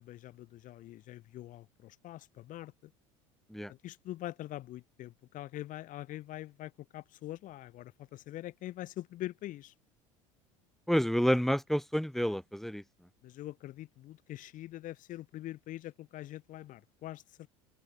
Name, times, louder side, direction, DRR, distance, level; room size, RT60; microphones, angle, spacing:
voice 1, 0.0-2.9 3.7-9.7 13.2-17.5, left 14 dB, 50° left, 2.2 m, -44 dB
voice 2, 10.9-12.8, equal, ahead, 1.7 m, -29 dB
open air
hypercardioid pair, 75°, 17 cm